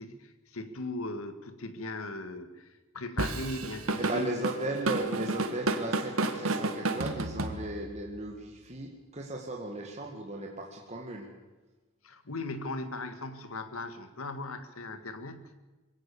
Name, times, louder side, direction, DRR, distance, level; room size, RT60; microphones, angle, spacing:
voice 1, 0.0-4.3 12.0-15.5, left 2 dB, 80° left, 10 dB, 1.8 m, -38 dB
Drum kit / Drum, 3.2-8.0, right 2 dB, 80° right, 1.7 m, -31 dB
voice 2, 4.0-11.3, right 1 dB, 30° right, 0 dB, 2.1 m, -36 dB
22.5 x 17.0 x 6.9 m, 1.2 s
head